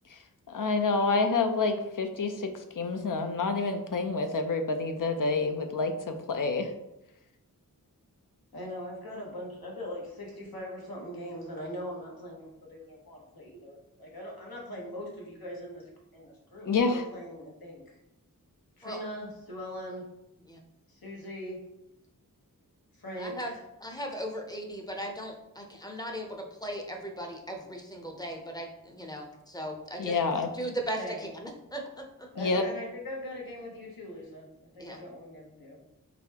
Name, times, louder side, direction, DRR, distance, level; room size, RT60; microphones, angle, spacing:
voice 1, 0.5-2.5 2.8-6.7 16.7-17.0 30.0-30.5 32.4-32.6, left 4 dB, 60° left, 6 dB, 0.6 m, -28 dB
voice 2, 8.5-15.8 16.1-17.8 18.8-20.0 20.9-21.6 23.0-23.6 30.0-30.3 31.0-31.3 32.3-34.5 34.7-35.8, equal, 80° left, -2 dB, 1.2 m, -41 dB
voice 3, 23.2-23.5 23.8-30.2 30.5-32.3 34.8-35.0, right 1 dB, 10° left, 2 dB, 0.6 m, -38 dB
4.1 x 3.2 x 2.9 m, 0.91 s
wide cardioid pair, 65°, 36 cm